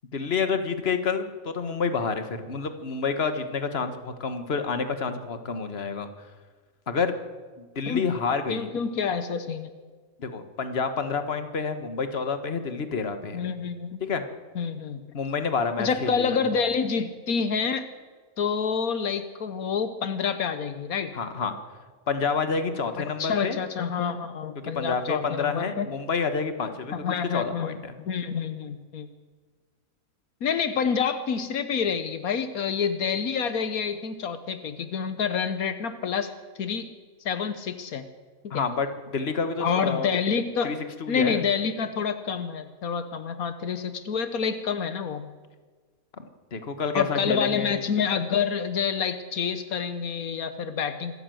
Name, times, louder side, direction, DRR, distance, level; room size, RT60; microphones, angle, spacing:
voice 1, 0.1-6.1 6.9-7.1 7.6-8.7 10.2-13.4 14.0-14.2 15.1-16.4 21.1-21.6 22.1-23.6 24.5-28.0 38.5-40.1 40.6-41.4 46.2-47.8, left 5 dB, 45° left, 8 dB, 1.7 m, -29 dB
voice 2, 8.5-9.7 13.3-14.0 14.5-15.1 15.8-17.9 18.4-21.1 23.0-25.9 26.9-29.1 30.4-36.3 36.6-36.9 37.2-38.1 38.5-38.6 39.6-40.8 41.1-45.3 46.9-51.2, left 6 dB, 80° left, 10 dB, 1.5 m, -28 dB
25.5 x 14.0 x 7.9 m, 1.5 s
omnidirectional pair, 1.5 m